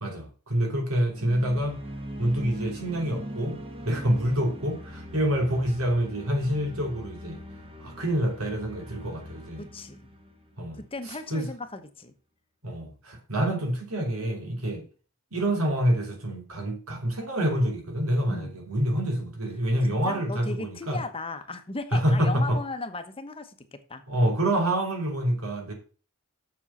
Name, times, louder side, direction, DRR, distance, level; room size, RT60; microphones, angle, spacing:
voice 1, 0.0-1.8 2.2-3.6 3.8-7.4 7.8-9.6 10.6-10.8 11.3-11.5 12.6-14.8 15.3-21.0 21.9-22.6 24.1-25.7, right 1 dB, 80° right, 3.0 m, -27 dB
sound 1, 1.1-11.1, equal, 25° right, 1.3 m, -40 dB
voice 2, 9.6-10.0 10.8-12.1 14.8-14.9 18.3-18.5 19.8-24.0, left 3 dB, 25° left, 1.0 m, -37 dB
7.4 x 7.1 x 5.5 m
head